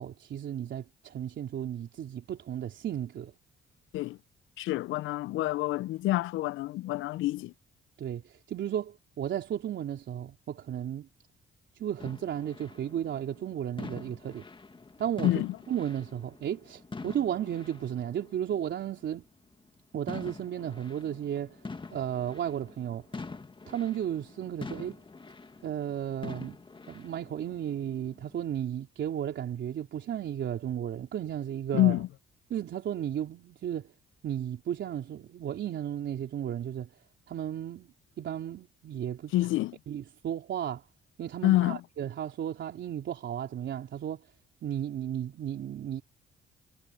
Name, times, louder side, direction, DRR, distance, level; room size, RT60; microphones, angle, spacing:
voice 1, 0.0-3.3 8.0-11.1 11.8-14.4 15.0-15.4 15.7-19.2 19.9-21.6 21.9-23.1 23.7-25.0 25.6-26.6 26.9-32.0 32.5-33.9 34.2-36.9 37.3-39.3 39.9-40.8 41.2-44.2 44.6-46.0, right 10 dB, 65° right, 3.6 m, -34 dB
voice 2, 4.6-7.5 15.2-15.6 31.7-32.1 39.3-39.8 41.4-41.8, left 16 dB, 80° left, 0.4 m, -27 dB
sound 1, 12.0-19.1 19.7-19.8 20.1-28.4, left 3 dB, 25° left, 1.9 m, -45 dB
cardioid pair, 90°, 20 cm